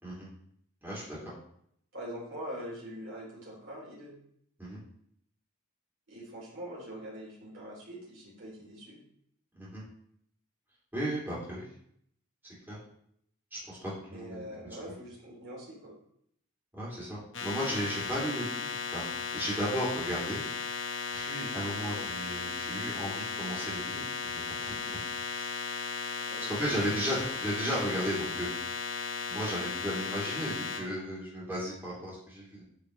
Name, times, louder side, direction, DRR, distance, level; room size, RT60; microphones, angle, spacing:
voice 1, 0.8-1.2 4.6-4.8 9.5-9.8 10.9-11.7 12.7-12.8 13.7-14.4 16.7-19.0 19.3-20.4 21.1-24.9 25.3-25.5 26.5-28.5 29.3-32.6, equal, 10° right, -8 dB, 2.9 m, -35 dB
voice 2, 1.9-4.1 6.1-9.0 14.1-15.9 21.9-22.0 26.3-26.5, equal, 60° right, -5 dB, 3.4 m, -43 dB
sound 1, 17.3-30.8, left 6 dB, 60° left, 1.2 m, -36 dB
9.5 x 5.0 x 3.3 m, 0.68 s
head